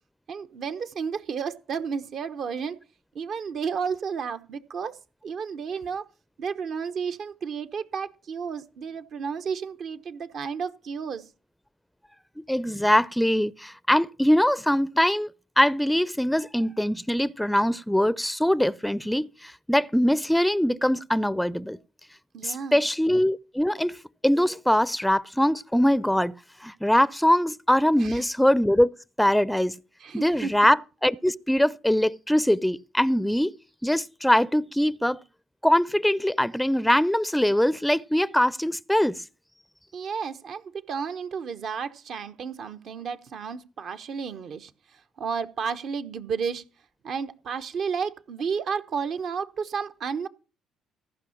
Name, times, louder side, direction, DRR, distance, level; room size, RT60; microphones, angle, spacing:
voice 1, 0.3-2.8 3.1-5.0 5.2-6.0 6.4-11.3 22.3-22.9 28.0-28.2 30.0-30.5 39.9-44.7 45.2-46.6 47.0-50.3, right 6 dB, 60° right, 1.0 m, -32 dB
voice 2, 12.4-15.3 15.6-21.8 22.4-24.0 24.2-26.3 26.6-28.9 29.2-29.8 30.1-33.6 33.8-35.2 35.6-39.2, equal, 5° left, 0.5 m, -22 dB
14.5 x 5.6 x 7.2 m
hypercardioid pair, 55°, 0 cm